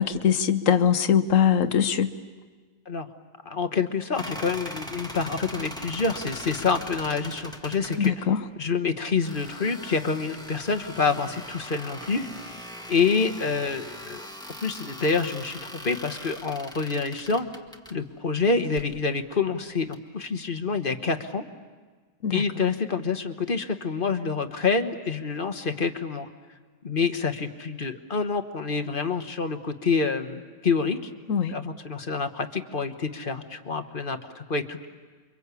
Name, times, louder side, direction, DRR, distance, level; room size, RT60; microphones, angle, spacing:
voice 1, 0.0-2.1 8.0-8.4 22.2-22.4 31.3-31.5, left 8 dB, 50° left, 10 dB, 1.3 m, -22 dB
voice 2, 3.4-8.2 8.6-12.3 12.9-14.3 14.6-17.5 17.9-21.4 22.3-26.3 26.8-31.1 31.5-34.9, left 4 dB, 35° left, 8 dB, 1.2 m, -27 dB
sound 1, 4.1-8.1 9.2-17.9 18.6-18.9 19.9-20.0, equal, 5° left, 1.3 m, -40 dB
29.0 x 24.5 x 8.4 m, 1.4 s
omnidirectional pair, 1.9 m